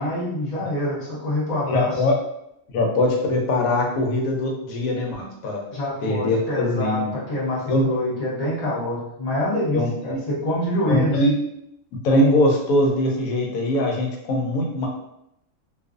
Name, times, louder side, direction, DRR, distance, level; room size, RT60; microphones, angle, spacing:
voice 1, 0.0-1.9 5.7-11.2, left 1 dB, 40° left, -6 dB, 0.7 m, -26 dB
voice 2, 1.7-2.1 2.7-5.6 6.0-7.1 7.7-7.8 9.7-10.2 10.9-11.3 11.9-14.9, left 1 dB, 90° left, 0 dB, 1.1 m, -22 dB
2.5 x 2.4 x 2.4 m, 0.79 s
omnidirectional pair, 1.4 m